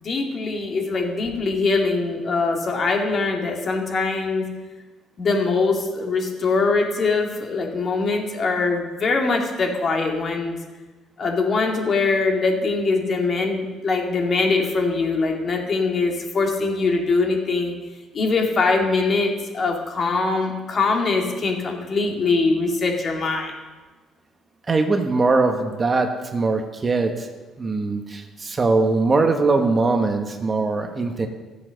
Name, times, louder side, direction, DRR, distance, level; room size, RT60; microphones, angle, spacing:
voice 1, 0.0-4.4 5.2-10.6 11.2-17.7 18.1-23.5, left 3 dB, 45° left, 2 dB, 2.4 m, -22 dB
voice 2, 24.7-27.3 27.6-31.3, right 3 dB, 30° right, 5 dB, 1.3 m, -21 dB
13.5 x 7.8 x 6.5 m, 1.3 s
cardioid pair, 90°, 0 cm